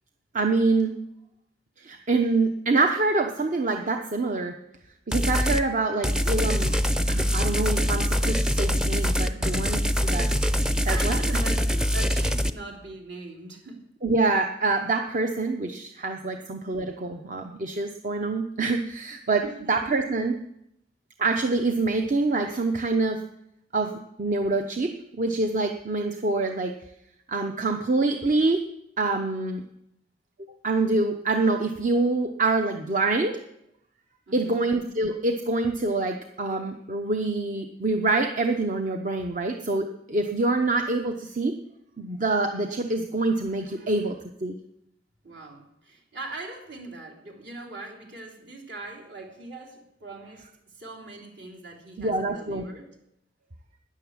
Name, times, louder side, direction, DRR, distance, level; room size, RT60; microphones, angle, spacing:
voice 1, 0.3-0.9 1.8-4.6 5.1-6.8 7.1-10.3 10.8-11.2 14.0-19.4 19.7-20.4 21.2-23.2 23.7-26.7 27.3-28.6 29.0-29.6 30.6-33.4 34.3-41.6 42.0-44.5 52.0-52.7, right 3 dB, 45° right, 5 dB, 0.8 m, -26 dB
sound 1, 5.1-5.6 6.0-12.5, equal, 5° right, 0.6 m, -24 dB
voice 2, 10.9-13.8 16.3-16.4 19.4-19.7 34.3-34.6 43.8-44.0 45.2-50.5 50.7-52.9, right 2 dB, 65° right, 0 dB, 3.3 m, -41 dB
13.0 x 10.0 x 7.3 m, 0.81 s
head